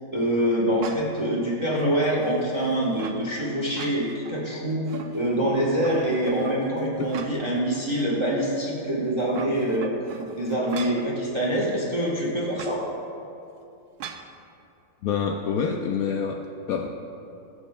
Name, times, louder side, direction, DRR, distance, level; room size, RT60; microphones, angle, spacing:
voice 1, 0.1-4.8 5.1-9.9 10.3-12.8, right 1 dB, 20° right, -4 dB, 1.4 m, -25 dB
sound 1, 0.8-1.3 1.8-3.2 3.6-4.4 4.7-5.5 5.8-7.6 8.0-8.1 9.1-11.1 12.5-12.8 14.0-14.3, right 6 dB, 85° right, 1.2 m, -39 dB
voice 2, 15.0-16.9, left 6 dB, 75° left, 2 dB, 1.0 m, -27 dB
20.5 x 7.3 x 2.3 m, 2.7 s
omnidirectional pair, 1.6 m